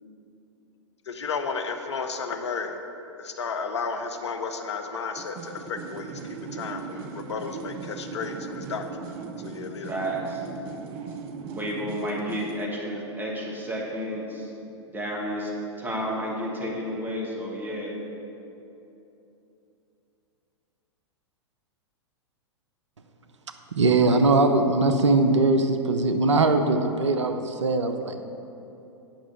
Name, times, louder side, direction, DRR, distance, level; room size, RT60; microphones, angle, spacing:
voice 1, 1.1-2.7 3.2-6.1 6.5-8.8 9.4-9.9, left 5 dB, 70° left, 7 dB, 0.8 m, -32 dB
sound 1, 5.2-12.7, right 5 dB, 35° right, 0.7 m, -38 dB
voice 2, 9.8-10.4 11.5-14.5 14.9-18.0, equal, 15° right, -3 dB, 1.9 m, -31 dB
voice 3, 23.7-28.3, right 3 dB, 75° right, 7 dB, 0.7 m, -21 dB
8.9 x 6.1 x 6.8 m, 2.9 s
figure-of-eight pair, 100°, 15 cm